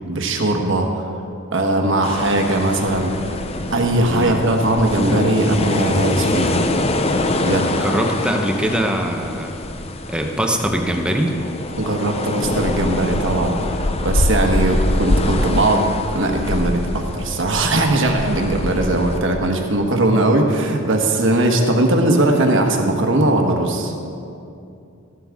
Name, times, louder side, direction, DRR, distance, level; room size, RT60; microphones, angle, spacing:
voice 1, 0.1-1.0 1.5-3.1 3.7-6.6 7.5-7.7 11.8-15.9 16.1-23.9, right 2 dB, 65° right, 3 dB, 1.3 m, -19 dB
sound 1, 2.0-19.2, left 2 dB, 30° left, 0.6 m, -24 dB
voice 2, 4.1-4.4 7.7-9.6 10.1-11.3, right 1 dB, 5° right, 2 dB, 0.8 m, -22 dB
14.5 x 11.5 x 3.6 m, 2.6 s
head